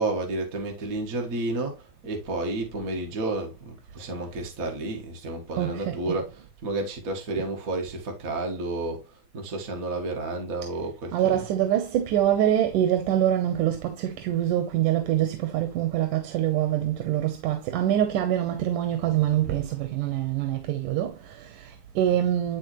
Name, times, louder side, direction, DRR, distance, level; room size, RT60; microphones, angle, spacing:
voice 1, 0.0-9.1 9.3-11.4, right 2 dB, 40° right, 1.4 m, -31 dB
voice 2, 5.6-6.2 11.1-22.6, right 11 dB, 85° right, 2.6 m, -25 dB
11.5 x 4.2 x 3.1 m
omnidirectional pair, 3.6 m